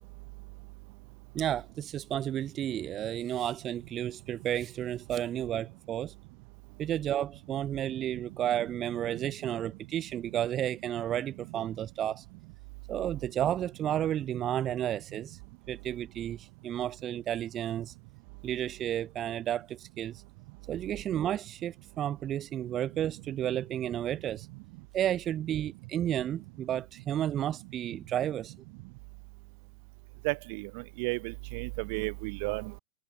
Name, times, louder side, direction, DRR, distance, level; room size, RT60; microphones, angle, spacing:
voice 1, 1.3-6.1 6.8-12.3 12.9-15.4 15.7-17.9 18.4-20.2 20.7-24.5 24.9-28.5, right 11 dB, 30° right, 0.9 m, -32 dB
voice 2, 30.2-32.8, right 31 dB, 45° right, 1.6 m, -33 dB
figure-of-eight pair, 90°, 0 cm